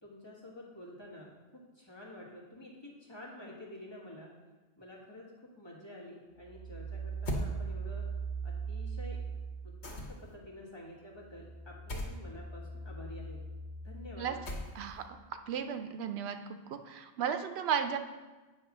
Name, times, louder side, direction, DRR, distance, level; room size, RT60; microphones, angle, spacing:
voice 1, 0.0-4.3 4.8-5.3 5.5-8.1 8.4-9.2 9.6-13.4 13.8-14.4, left 1 dB, 25° left, -5 dB, 1.6 m, -49 dB
sound 1, 6.4-10.3 10.7-15.3, right 4 dB, 45° left, 1.6 m, -41 dB
sound 2, 7.3-7.5 9.8-10.4 11.9-12.2 14.5-15.0, left 1 dB, 80° left, 1.3 m, -37 dB
voice 2, 15.5-16.4 16.7-18.0, right 8 dB, 75° right, 7 dB, 0.8 m, -34 dB
8.8 x 3.0 x 5.9 m, 1.2 s
omnidirectional pair, 1.1 m